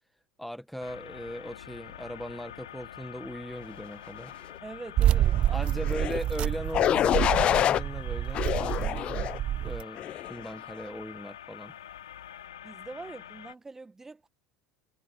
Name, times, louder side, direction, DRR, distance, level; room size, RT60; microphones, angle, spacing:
voice 1, 0.4-4.3 5.5-9.3 9.6-11.7, equal, ahead, 1.3 m, -39 dB
sound 1, 0.8-13.5, left 11 dB, 80° left, 4.8 m, -46 dB
voice 2, 4.6-5.7 10.3-10.4 12.6-14.3, right 3 dB, 15° right, 1.4 m, -43 dB
sound 2, 5.0-9.8, right 12 dB, 45° right, 0.8 m, -28 dB
sound 3, 5.8-6.2 6.7-7.8 8.3-9.4 10.0-10.3, left 11 dB, 40° left, 0.4 m, -26 dB
hypercardioid pair, 75°, 3 cm